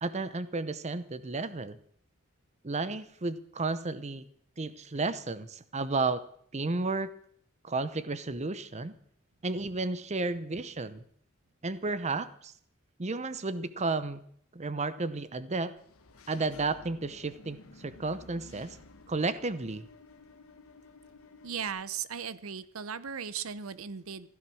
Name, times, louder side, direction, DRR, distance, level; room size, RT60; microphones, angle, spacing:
voice 1, 0.0-1.8 2.6-4.2 4.6-6.2 6.5-7.1 7.6-8.9 9.4-11.0 11.6-12.5 13.0-14.2 14.5-15.7 16.3-18.8 19.1-19.9, right 3 dB, 30° right, 14 dB, 0.8 m, -32 dB
Engine / Mechanisms, 15.8-21.7, left 3 dB, 85° left, 1.3 m, -53 dB
voice 2, 21.4-24.3, right 7 dB, 75° right, 16 dB, 0.8 m, -37 dB
15.5 x 12.0 x 6.3 m, 0.63 s
head